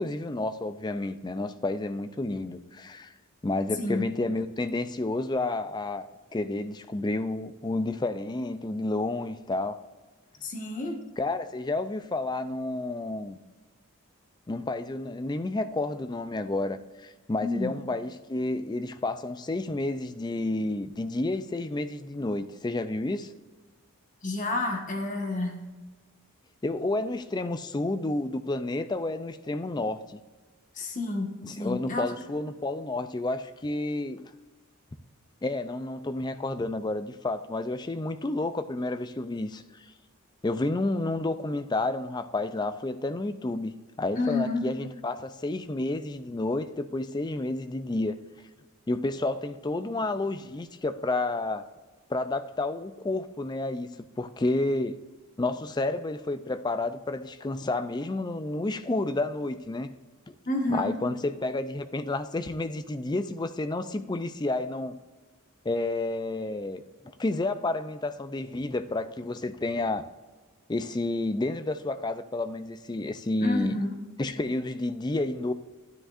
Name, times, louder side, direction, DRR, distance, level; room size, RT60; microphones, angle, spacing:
voice 1, 0.0-3.1 3.4-9.8 11.2-13.4 14.5-23.3 26.6-30.2 31.4-34.3 35.4-39.6 40.4-48.2 48.9-51.6 52.1-53.9 54.2-55.0 55.4-59.9 60.3-60.4 60.7-65.0 65.6-66.8 67.2-70.0 70.7-73.9 74.2-75.5, left 2 dB, 20° left, 0.4 m, -30 dB
voice 2, 10.4-11.0 17.4-17.7 24.2-25.6 30.7-32.1 44.1-44.6 60.5-60.9 73.4-73.9, left 2 dB, 35° left, 1.4 m, -29 dB
12.5 x 10.0 x 2.5 m
head